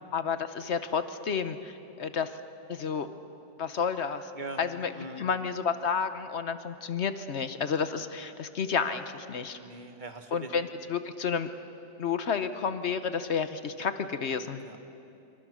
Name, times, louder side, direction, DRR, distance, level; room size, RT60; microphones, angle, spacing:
voice 1, 0.1-2.4 2.7-3.1 3.6-4.3 4.6-4.9 5.2-9.6 10.3-11.5 12.0-14.6, left 6 dB, 55° left, 10 dB, 0.8 m, -31 dB
voice 2, 4.9-5.2 9.6-10.5 14.6-14.8, right 2 dB, 25° right, 5 dB, 1.6 m, -41 dB
27.0 x 24.5 x 6.2 m, 2.7 s
omnidirectional pair, 2.1 m